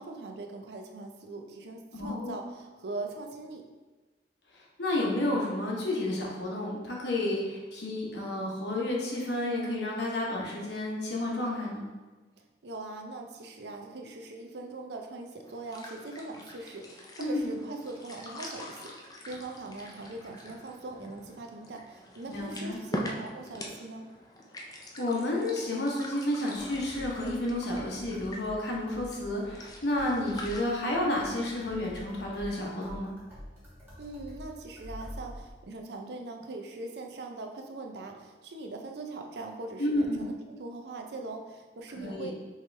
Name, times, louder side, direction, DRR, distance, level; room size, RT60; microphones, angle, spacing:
voice 1, 0.0-3.6 12.4-24.1 34.0-42.3, right 2 dB, 65° right, 3 dB, 0.5 m, -41 dB
voice 2, 1.9-2.3 4.5-11.9 17.2-17.6 22.3-22.8 25.0-33.1 39.8-40.3 42.0-42.3, left 1 dB, 70° left, -3 dB, 1.0 m, -31 dB
sound 1, 15.4-30.6, left 1 dB, 20° left, 0.4 m, -44 dB
sound 2, 26.6-35.5, left 1 dB, 15° right, 1.3 m, -47 dB
4.7 x 3.0 x 3.3 m, 1.3 s
head